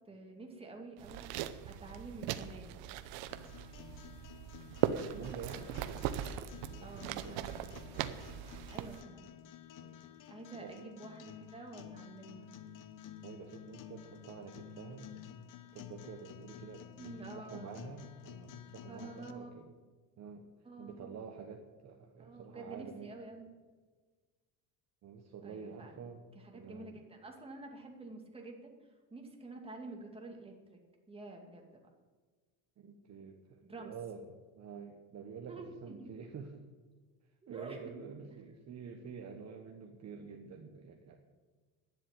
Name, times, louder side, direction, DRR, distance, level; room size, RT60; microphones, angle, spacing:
voice 1, 0.1-2.8 6.8-7.6 8.7-9.3 10.3-12.5 17.0-17.8 18.9-19.5 20.6-21.2 22.2-23.5 25.4-25.9 26.3-28.7 29.1-30.8 31.1-31.8 33.7-33.9 35.5-36.1 37.5-37.8, right 2 dB, 15° right, 1 dB, 2.3 m, -49 dB
sound 1, 1.0-9.0, right 11 dB, 70° right, 0.9 m, -39 dB
sound 2, 3.3-19.3, left 10 dB, 45° left, 0.9 m, -52 dB
voice 2, 4.8-5.7 6.7-7.6 7.9-8.3 9.7-10.0 10.6-10.8 13.2-15.2 15.7-19.7 20.2-20.5 20.8-23.1 25.0-26.2 26.5-27.0 32.8-34.3 34.5-36.6 37.5-41.2, right 6 dB, 40° right, 3 dB, 1.2 m, -48 dB
10.5 x 7.6 x 9.2 m, 1.4 s
cardioid pair, 115°, 43 cm